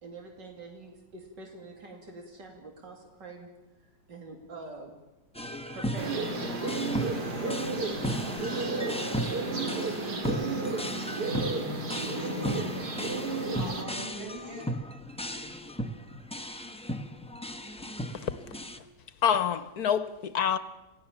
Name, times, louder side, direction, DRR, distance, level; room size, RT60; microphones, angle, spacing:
voice 1, 0.0-3.5 4.1-5.0 5.7-7.4 8.1-9.3 10.1-11.0, right 3 dB, 85° right, 3.4 m, -46 dB
sound 1, 5.3-18.8, equal, 5° left, 0.8 m, -36 dB
sound 2, 6.0-13.8, right 3 dB, 65° right, 2.9 m, -32 dB
voice 2, 11.2-12.7 13.5-14.7, equal, 30° right, 8.1 m, -39 dB
voice 3, 19.2-20.6, left 8 dB, 65° left, 1.4 m, -26 dB
28.5 x 17.0 x 7.2 m
omnidirectional pair, 1.9 m